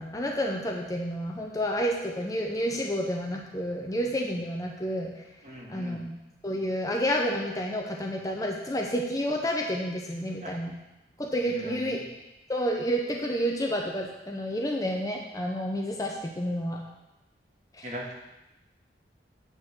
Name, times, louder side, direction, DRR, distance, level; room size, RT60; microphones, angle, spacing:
voice 1, 0.0-5.1 5.7-6.1 6.4-10.7 11.2-12.0 12.5-16.8 17.8-17.9, equal, 20° left, 0 dB, 0.6 m, -30 dB
voice 2, 5.4-6.0 10.4-10.5 11.4-12.0 17.8-18.1, right 1 dB, 40° right, -3 dB, 1.7 m, -39 dB
8.8 x 3.9 x 6.3 m, 0.96 s
head